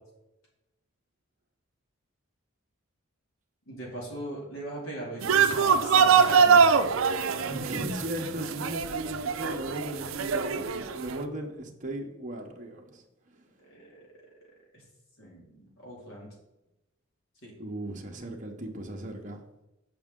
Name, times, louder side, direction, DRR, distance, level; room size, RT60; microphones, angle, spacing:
voice 1, 3.7-6.6 13.6-14.0 15.2-16.3 17.4-17.5, right 1 dB, 75° left, -3 dB, 2.4 m, -39 dB
sound 1, 5.2-11.1, right 6 dB, 75° right, 0.5 m, -23 dB
voice 2, 7.4-13.0 17.6-19.4, right 1 dB, 40° right, 1 dB, 0.8 m, -36 dB
6.9 x 5.2 x 3.7 m, 0.94 s
head